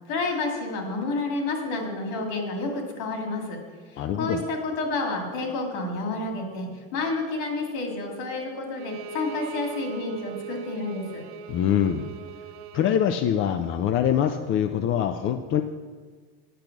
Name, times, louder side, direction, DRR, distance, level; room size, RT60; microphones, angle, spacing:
voice 1, 0.1-3.6 3.9-11.2, left 3 dB, 60° left, 2 dB, 2.6 m, -30 dB
voice 2, 4.0-4.4 11.5-12.1 12.7-15.6, left 9 dB, 35° left, 8 dB, 0.5 m, -24 dB
Bowed string instrument, 8.8-13.0, right 6 dB, 55° right, 0.8 m, -39 dB
9.0 x 6.6 x 6.0 m, 1.5 s
supercardioid pair, 125°, 35 cm